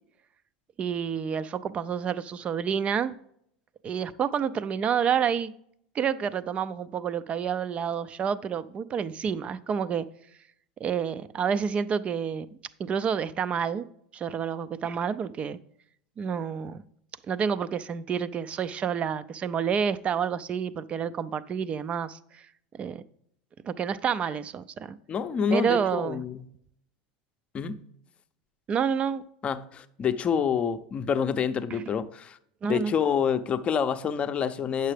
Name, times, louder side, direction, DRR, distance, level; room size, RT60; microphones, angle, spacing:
voice 1, 0.8-3.2 3.8-5.5 5.9-10.1 10.8-12.5 12.8-13.9 14.1-15.6 16.2-16.8 17.3-22.5 22.7-23.0 23.6-25.0 25.5-26.2 28.7-29.2 31.7-31.8 32.6-33.0, right 7 dB, 30° right, 0.5 m, -29 dB
voice 2, 25.1-26.4 27.5-27.8 29.4-32.4 32.7-34.9, left 7 dB, 30° left, 0.6 m, -27 dB
8.8 x 6.7 x 3.3 m
hypercardioid pair, 105°, 4 cm